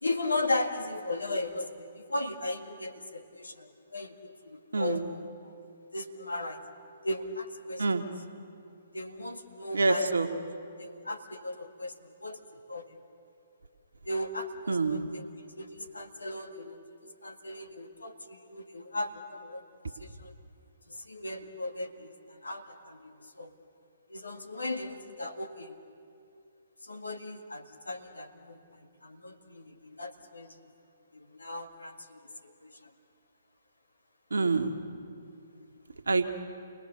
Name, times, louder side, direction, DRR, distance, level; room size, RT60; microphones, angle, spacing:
voice 1, 0.0-5.5 5.9-6.6 7.0-7.8 8.9-10.1 10.8-12.4 12.7-13.0 14.1-15.3 15.6-16.8 17.2-19.6 20.0-20.3 20.9-23.5 24.1-25.8 26.8-28.6 29.0-30.5 31.1-32.2 32.6-32.8 35.6-35.7, left 2 dB, 80° left, 5 dB, 1.9 m, -37 dB
voice 2, 4.7-5.1 7.8-8.0 9.7-10.3 14.7-15.1 34.3-34.8 36.1-36.3, right 3 dB, 75° right, 5 dB, 1.6 m, -26 dB
29.0 x 19.5 x 6.9 m, 2.5 s
figure-of-eight pair, 125°, 0 cm